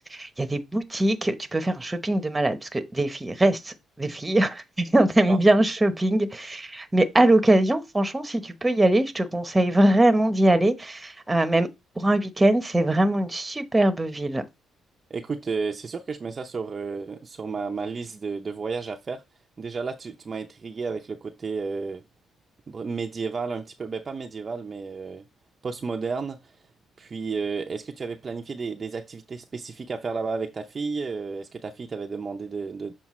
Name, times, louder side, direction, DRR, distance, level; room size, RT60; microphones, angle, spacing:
voice 1, 0.1-11.7 12.0-14.4, right 1 dB, 15° right, 0.9 m, -22 dB
voice 2, 15.1-19.2 19.6-22.0 22.7-25.2 25.6-26.6 27.0-32.9, right 4 dB, 35° right, 0.6 m, -32 dB
7.2 x 4.4 x 3.1 m
cardioid pair, 90°, 0 cm